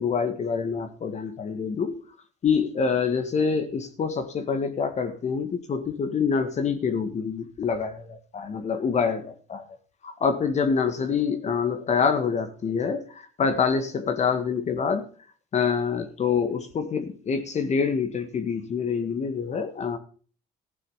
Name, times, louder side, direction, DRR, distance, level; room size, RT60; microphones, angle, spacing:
voice 1, 0.0-2.0 2.4-9.6 10.0-15.1 15.5-20.0, left 6 dB, 40° left, 8 dB, 1.9 m, -26 dB
15.0 x 8.3 x 5.7 m, 0.40 s
cardioid pair, 110°, 17 cm